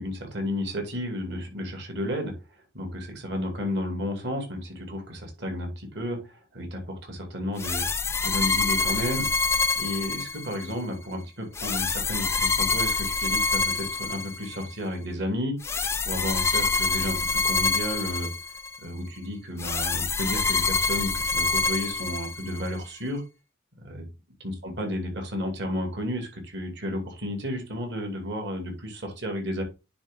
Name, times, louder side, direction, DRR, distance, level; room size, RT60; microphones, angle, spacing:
voice 1, 0.0-2.3 2.7-7.9 8.2-9.3 9.8-15.6 16.0-18.3 18.8-23.2 23.8-24.1 24.4-29.6, left 1 dB, 60° right, 4 dB, 2.4 m, -32 dB
sound 1, 7.6-10.7 11.6-14.7 15.6-18.8 19.6-22.7, left 3 dB, 15° left, 0.4 m, -26 dB
9.6 x 3.7 x 3.7 m, 0.28 s
head